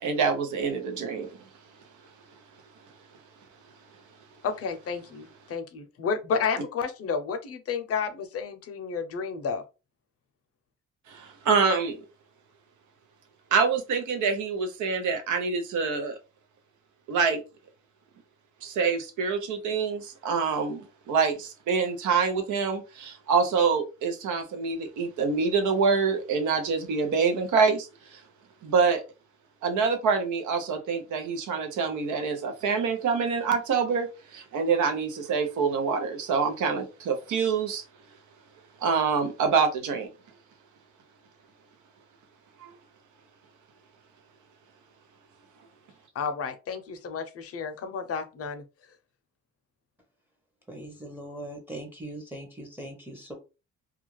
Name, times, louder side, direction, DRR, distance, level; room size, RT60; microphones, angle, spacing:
voice 1, 0.0-1.4 11.1-12.0 13.5-16.2 17.1-17.4 18.6-28.2 28.6-29.0 29.6-37.8 38.8-40.1 42.6-42.7, right 5 dB, 80° right, 0.7 m, -26 dB
voice 2, 4.4-9.6 46.1-48.6, left 5 dB, 50° left, 0.6 m, -31 dB
voice 3, 50.7-53.3, right 1 dB, 5° right, 0.7 m, -40 dB
2.3 x 2.3 x 3.0 m
cardioid pair, 90°, 30 cm